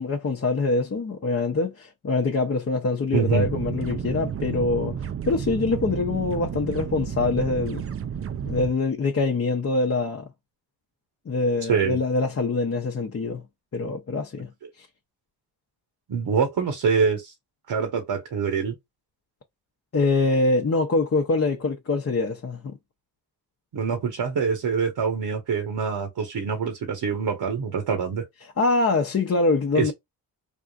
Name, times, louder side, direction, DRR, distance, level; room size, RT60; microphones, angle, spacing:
voice 1, 0.0-7.8 8.4-10.3 11.3-13.4 13.7-14.5 14.8-14.9 19.9-22.8 28.4-29.9, left 3 dB, 35° left, 0.7 m, -24 dB
voice 2, 3.1-3.5 11.7-12.0 16.1-17.3 17.7-18.7 23.7-28.2 29.7-29.9, right 6 dB, 65° right, 1.2 m, -25 dB
sound 1, 3.3-8.7, right 7 dB, 35° right, 0.4 m, -31 dB
3.6 x 2.4 x 2.4 m
cardioid pair, 65°, 42 cm